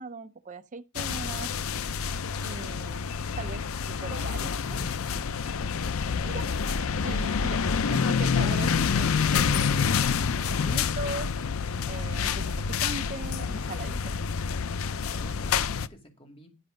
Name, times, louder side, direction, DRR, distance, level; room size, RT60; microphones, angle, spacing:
voice 1, 0.0-1.5 2.4-4.9 6.2-6.5 7.0-7.6 7.9-11.3 11.8-14.1, right 3 dB, 35° right, 0.6 m, -40 dB
sound 1, 1.0-15.9, left 6 dB, 75° left, 0.5 m, -28 dB
voice 2, 14.6-16.5, left 1 dB, 25° left, 2.6 m, -51 dB
11.0 x 6.0 x 5.1 m
head